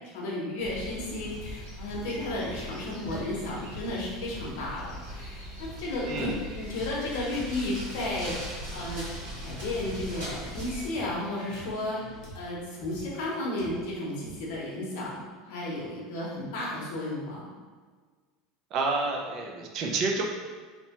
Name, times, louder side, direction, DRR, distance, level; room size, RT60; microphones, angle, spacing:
voice 1, 0.0-8.4 8.7-9.1 9.4-12.0 12.3-17.5, left 1 dB, 65° left, -4 dB, 0.8 m, -33 dB
sound 1, 0.6-10.9, equal, 85° right, 1.5 m, -40 dB
sound 2, 1.3-4.5 5.0-9.4 9.7-11.9 12.2-12.6 12.9-13.2 13.5-14.0 14.2-14.6, equal, 30° left, 0.6 m, -48 dB
voice 2, 6.0-6.3 18.7-20.2, right 3 dB, 35° right, 1 dB, 0.3 m, -29 dB
sound 3, 7.9-12.3, left 1 dB, ahead, 0.9 m, -49 dB
2.8 x 2.1 x 2.8 m, 1.5 s
cardioid pair, 175°, 0 cm